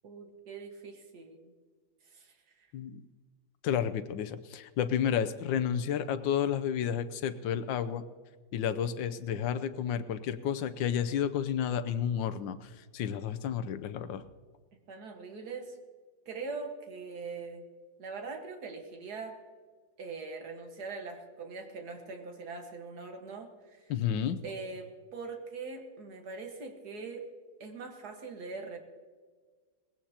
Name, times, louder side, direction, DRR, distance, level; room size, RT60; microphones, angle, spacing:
voice 1, 0.0-1.5 2.1-2.7 14.9-15.8 16.3-17.7 18.0-19.4 20.0-23.9 24.4-27.3 27.6-28.8, right 4 dB, 50° right, 3 dB, 2.0 m, -42 dB
voice 2, 3.6-8.0 8.5-14.2 23.9-24.4, left 9 dB, 70° left, 11 dB, 1.3 m, -31 dB
20.0 x 16.5 x 2.9 m, 1.5 s
omnidirectional pair, 2.2 m